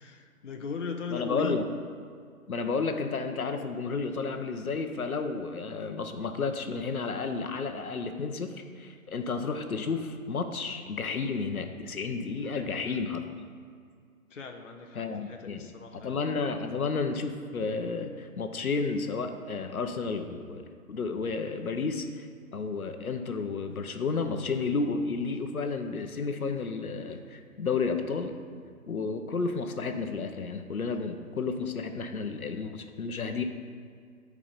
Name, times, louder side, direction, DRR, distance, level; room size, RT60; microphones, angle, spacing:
voice 1, 0.0-1.7 12.5-13.0 14.3-16.2, left 5 dB, 60° left, 3 dB, 1.0 m, -38 dB
voice 2, 1.1-1.6 2.5-13.2 14.9-15.7 15.9-28.4 28.9-33.4, left 4 dB, 75° left, 6 dB, 1.1 m, -32 dB
12.5 x 4.9 x 5.2 m, 2.1 s
hypercardioid pair, 175°, 43 cm